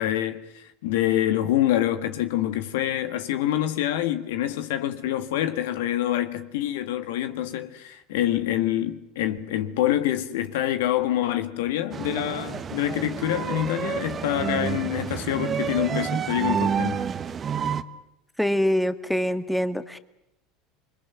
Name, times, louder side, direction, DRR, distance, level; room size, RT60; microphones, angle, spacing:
voice 1, 0.0-17.1, left 12 dB, 75° left, 1.7 m, -26 dB
sound 1, 11.9-17.8, right 7 dB, 35° right, 1.4 m, -29 dB
voice 2, 18.4-20.0, equal, ahead, 1.8 m, -24 dB
28.0 x 22.0 x 9.3 m
hypercardioid pair, 80°, 0 cm